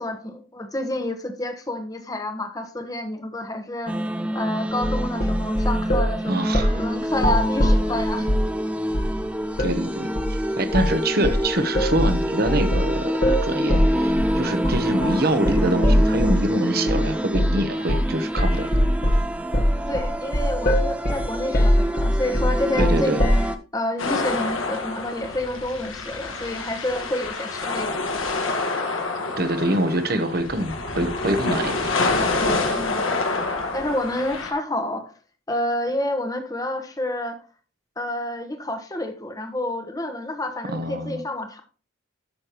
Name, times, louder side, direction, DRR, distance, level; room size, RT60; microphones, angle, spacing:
voice 1, 0.0-3.9 4.3-8.3 19.9-23.1 23.7-27.9 32.7-33.2 33.7-35.0 35.5-37.4 38.0-41.6, left 1 dB, 20° left, 1.1 m, -29 dB
sound 1, 3.9-23.5, equal, 5° right, 0.5 m, -27 dB
sound 2, 4.8-6.1 6.5-6.8 7.1-8.5 8.9-9.2 9.6-9.8 10.2-10.4 10.7-11.0 11.2-16.5 16.9-17.1 17.3-17.6 17.9-18.1 18.4-23.5, equal, 45° left, 1.3 m, -21 dB
voice 2, 6.3-6.8 9.6-18.7 22.8-23.2 29.4-31.9 40.7-41.2, right 1 dB, 50° right, 1.1 m, -25 dB
sound 3, 24.0-34.5, left 3 dB, 90° left, 1.7 m, -27 dB
11.5 x 6.5 x 3.0 m
head